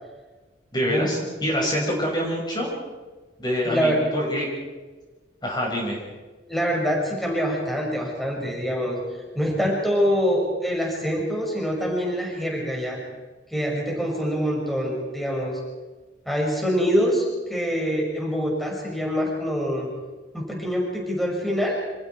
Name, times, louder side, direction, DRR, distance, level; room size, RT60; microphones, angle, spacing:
voice 1, 0.7-2.7 3.4-4.5 5.4-6.0, equal, 25° left, -1 dB, 5.9 m, -25 dB
voice 2, 3.6-4.0 6.5-9.0 9.3-13.0 13.5-15.6 16.3-19.9 20.3-21.7, equal, ahead, -2 dB, 6.1 m, -25 dB
29.0 x 27.5 x 4.8 m, 1.3 s
head